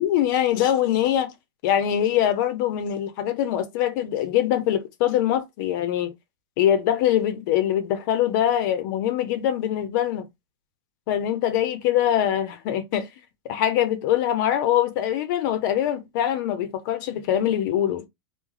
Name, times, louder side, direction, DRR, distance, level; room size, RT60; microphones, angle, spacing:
voice 1, 0.0-1.3 1.6-6.1 6.6-10.3 11.1-13.1 13.4-18.0, left 11 dB, 55° left, 0.8 m, -23 dB
3.0 x 2.3 x 3.8 m
supercardioid pair, 140°, 13 cm